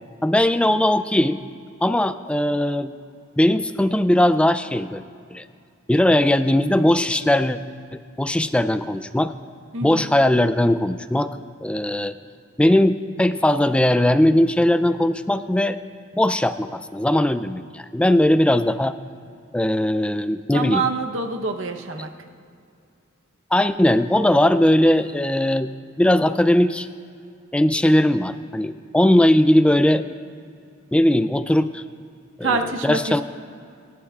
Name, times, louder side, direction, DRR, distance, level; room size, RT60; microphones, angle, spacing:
voice 1, 0.2-1.4 1.8-2.9 3.4-5.0 5.3-5.4 5.9-7.6 8.2-9.3 9.8-11.3 11.6-12.2 12.6-15.8 16.1-19.0 19.5-20.9 22.0-22.1 23.5-25.7 26.0-26.9 27.5-30.0 30.9-31.8 32.4-33.2, left 1 dB, 5° left, 12 dB, 0.3 m, -19 dB
voice 2, 9.7-10.1 20.5-22.1 32.4-33.0, right 3 dB, 65° right, 5 dB, 0.9 m, -25 dB
27.5 x 11.5 x 2.4 m, 2.4 s
head